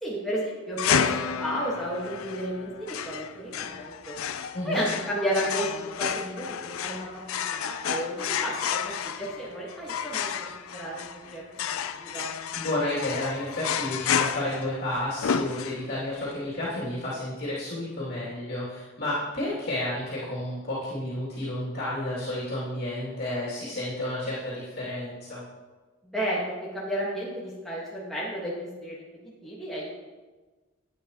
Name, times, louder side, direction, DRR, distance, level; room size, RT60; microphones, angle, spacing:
voice 1, 0.0-4.1 4.6-7.1 7.3-11.4 12.0-12.3 26.0-29.0 29.4-29.9, equal, ahead, -7 dB, 1.5 m, -32 dB
sound 1, 0.8-16.1, left 7 dB, 80° left, 0.5 m, -31 dB
voice 2, 12.5-25.4, left 1 dB, 50° left, -8 dB, 2.6 m, -31 dB
11.0 x 9.1 x 3.0 m, 1.3 s
head